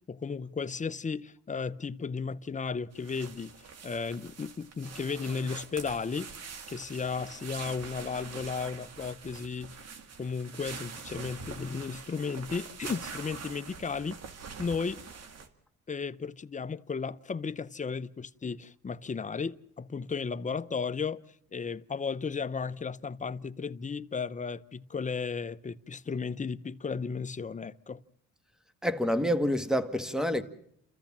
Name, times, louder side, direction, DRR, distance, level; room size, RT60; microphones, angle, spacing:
voice 1, 0.0-3.5 3.8-6.3 6.7-9.8 10.2-14.2 14.6-15.0 15.9-21.2 21.5-28.0, left 5 dB, 25° left, 0.8 m, -34 dB
sound 1, 2.9-15.5, right 5 dB, 55° right, 2.1 m, -44 dB
voice 2, 28.8-30.4, equal, ahead, 1.7 m, -27 dB
30.0 x 14.5 x 7.4 m
cardioid pair, 90°, 30 cm